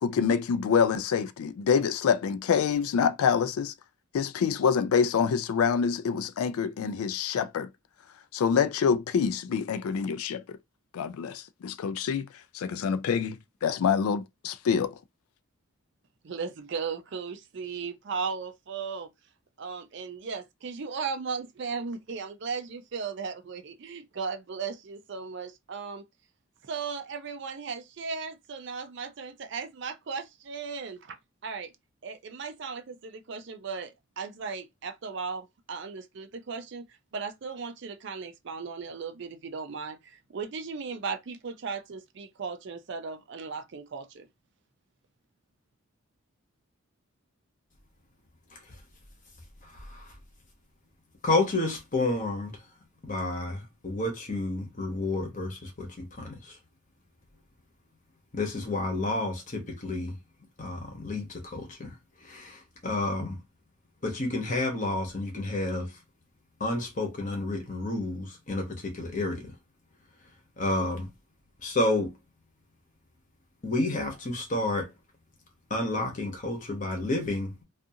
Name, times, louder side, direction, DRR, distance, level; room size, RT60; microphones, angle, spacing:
voice 1, 0.0-3.7 4.1-7.7 8.3-10.6 10.9-12.3 12.5-14.9, left 6 dB, 85° left, 0.3 m, -26 dB
voice 2, 16.2-19.1 19.6-26.0 26.6-31.2 31.4-31.7 32.0-36.9 37.1-44.3, right 5 dB, 55° right, 0.4 m, -36 dB
voice 3, 49.7-50.0 51.2-52.6 53.0-56.5 58.3-60.2 60.6-61.9 62.2-63.4 64.0-65.9 66.6-69.5 70.6-71.1 71.6-72.1 73.6-74.9 75.7-77.5, left 2 dB, 35° left, 0.9 m, -30 dB
2.5 x 2.4 x 2.7 m
head